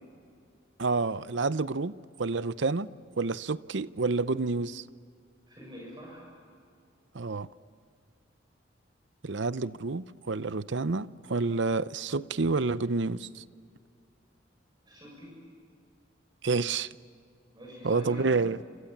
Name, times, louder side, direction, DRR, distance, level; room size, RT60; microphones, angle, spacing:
voice 1, 0.8-1.9 2.2-2.9 3.2-4.8 7.1-7.5 9.2-13.4 16.4-16.9 17.8-18.6, right 3 dB, 65° right, 0.7 m, -29 dB
voice 2, 5.5-6.3 14.8-15.3 17.5-18.3, equal, 20° right, 7.5 m, -45 dB
29.0 x 27.5 x 7.3 m
head